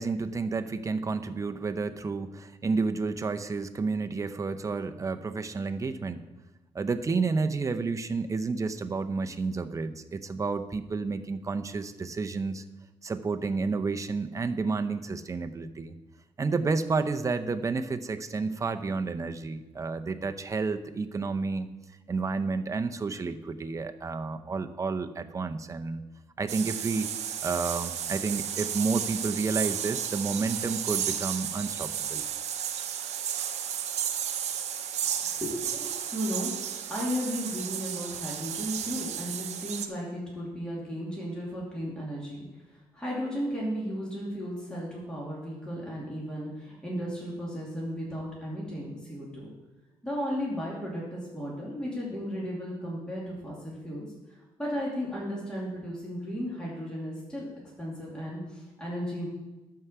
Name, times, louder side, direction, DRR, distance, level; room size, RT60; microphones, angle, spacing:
voice 1, 0.0-6.2 6.7-12.6 13.0-15.9 16.4-21.7 22.1-26.0 26.4-27.1 27.4-32.2, right 4 dB, 25° right, 8 dB, 0.6 m, -30 dB
sound 1, 26.5-39.9, right 9 dB, 70° right, 0.7 m, -33 dB
voice 2, 35.3-36.5 36.9-42.4 42.9-49.5 50.0-54.1 54.6-57.5 57.8-59.3, equal, 5° left, -6 dB, 2.5 m, -34 dB
11.5 x 4.7 x 6.7 m, 1.1 s
cardioid pair, 115°, 12 cm